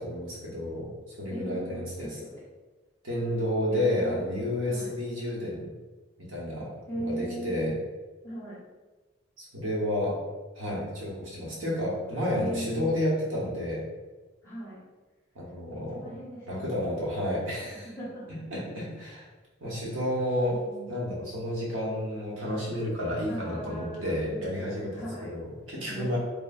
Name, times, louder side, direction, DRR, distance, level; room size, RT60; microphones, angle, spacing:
voice 1, 0.0-2.1 3.0-5.6 6.2-7.7 9.4-10.2 10.5-13.8 15.3-16.2 16.5-17.9 18.5-19.3 19.6-20.6 20.9-26.2, left 1 dB, 80° right, -5 dB, 0.9 m, -31 dB
voice 2, 1.3-2.4 3.7-4.2 4.7-4.9 6.9-7.8 8.2-8.6 12.4-12.9 14.4-14.8 15.7-16.7 17.8-18.3 20.5-21.0 23.3-25.3 25.9-26.2, right 1 dB, 15° left, -9 dB, 0.8 m, -39 dB
3.1 x 2.5 x 2.3 m, 1.2 s
head